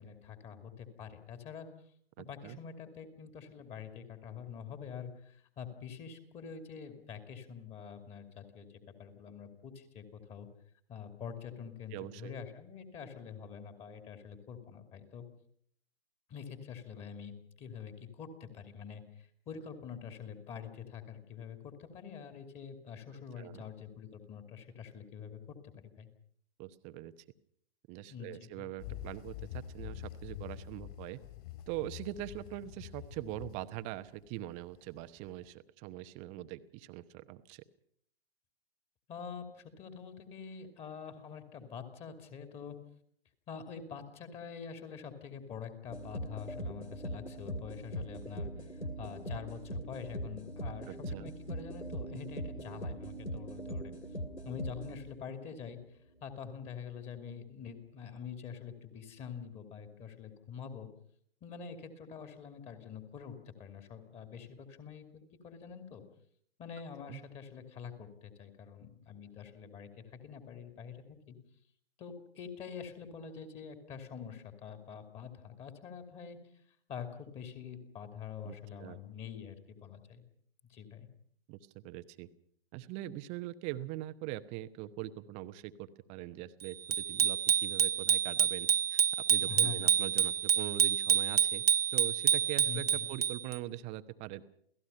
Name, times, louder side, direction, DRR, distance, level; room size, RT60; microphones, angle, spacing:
voice 1, 0.0-1.7 2.2-10.5 10.9-15.2 16.3-26.1 28.1-28.7 39.1-42.8 43.5-48.5 49.0-53.9 54.4-55.8 56.2-60.9 61.4-65.0 65.4-66.0 66.6-71.4 72.0-76.4 76.9-80.2 80.7-81.1 89.4-89.9 92.6-93.1, left 7 dB, 20° left, 7 dB, 2.6 m, -46 dB
voice 2, 2.2-2.6 11.9-12.3 23.4-23.6 26.6-27.1 27.9-31.2 31.7-37.6 50.9-51.3 67.1-67.2 78.4-79.0 81.5-82.3 82.7-89.0 89.3-91.6 91.9-94.4, right 15 dB, 20° right, 12 dB, 0.9 m, -42 dB
sound 1, 28.8-35.5, left 12 dB, 35° left, 4.2 m, -46 dB
sound 2, 45.9-55.4, equal, 90° left, 2.9 m, -41 dB
Bicycle bell, 86.9-93.6, right 8 dB, 65° right, 1.1 m, -28 dB
29.0 x 17.5 x 5.6 m, 0.66 s
figure-of-eight pair, 120°, 32 cm